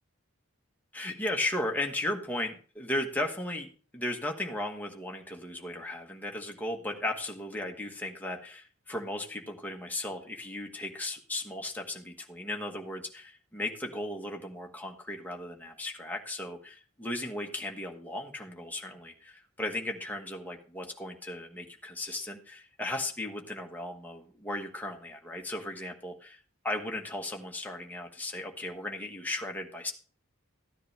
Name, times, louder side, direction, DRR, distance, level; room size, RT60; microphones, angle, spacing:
voice 1, 0.9-3.7 3.9-29.9, left 1 dB, 10° left, 1 dB, 1.3 m, -36 dB
13.5 x 9.9 x 3.3 m, 0.40 s
head